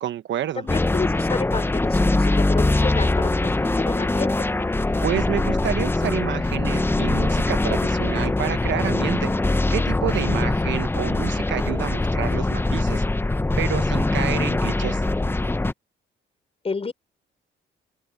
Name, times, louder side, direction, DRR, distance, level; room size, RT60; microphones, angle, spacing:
voice 1, 0.0-0.7 5.0-9.3 9.7-13.0 13.6-15.0, right 11 dB, 70° right, 1.1 m, -29 dB
voice 2, 0.6-4.5 16.6-16.9, left 4 dB, 30° left, 4.4 m, -30 dB
sound 1, 0.7-15.7, left 2 dB, 10° left, 0.8 m, -22 dB
open air
cardioid pair, 90°, 20 cm